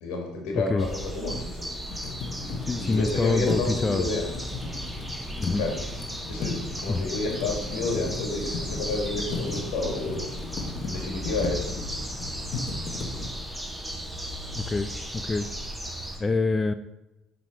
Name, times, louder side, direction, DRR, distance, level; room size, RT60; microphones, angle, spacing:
voice 1, 0.0-1.7 2.8-4.3 5.5-5.8 6.3-10.2 10.8-11.7 16.1-16.2, left 3 dB, 85° left, 0 dB, 2.0 m, -30 dB
sound 1, 0.8-16.2, equal, 5° right, 1.8 m, -36 dB
sound 2, 1.8-13.3, left 3 dB, 60° left, 1.2 m, -36 dB
voice 2, 2.6-4.0 5.4-5.6 6.9-7.1 14.6-15.5 16.2-16.7, left 3 dB, 25° left, 10 dB, 0.4 m, -26 dB
7.4 x 4.1 x 4.7 m, 0.97 s
supercardioid pair, 75°, 0 cm